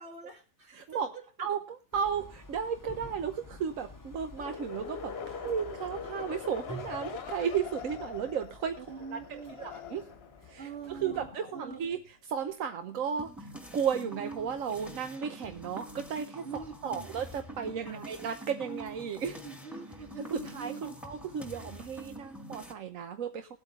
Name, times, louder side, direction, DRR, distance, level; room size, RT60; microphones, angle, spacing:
voice 1, 0.0-1.5 8.8-9.7 10.6-11.9 16.4-17.1 17.8-18.1 19.3-21.1, right 5 dB, 55° right, 3 dB, 2.5 m, -45 dB
voice 2, 0.8-1.1 1.4-8.8 9.6-10.0 10.5-12.0 12.3-16.4 16.8-19.4 20.3-23.6, right 7 dB, 85° right, 8 dB, 1.3 m, -34 dB
sound 1, 1.9-11.3, left 1 dB, 20° left, 0.6 m, -50 dB
sound 2, 4.4-12.1 17.3-18.2, left 7 dB, 55° left, 1.1 m, -43 dB
sound 3, 13.2-22.7, right 1 dB, ahead, 1.4 m, -45 dB
21.0 x 8.4 x 3.2 m, 0.31 s
omnidirectional pair, 1.3 m